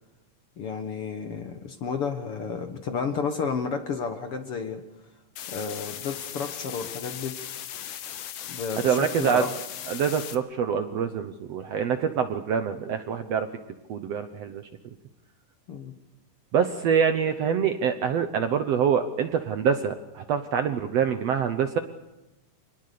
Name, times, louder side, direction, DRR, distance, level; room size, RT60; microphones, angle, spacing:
voice 1, 0.6-4.8 5.5-7.4 8.5-9.5 15.7-15.9, left 5 dB, 55° left, 6 dB, 1.8 m, -31 dB
sound 1, 5.4-10.4, left 10 dB, 70° left, 2.7 m, -38 dB
voice 2, 8.8-9.4 9.9-13.5 13.9-14.6 16.5-21.8, right 7 dB, 65° right, 8 dB, 1.7 m, -25 dB
26.5 x 19.5 x 6.8 m, 0.99 s
omnidirectional pair, 3.9 m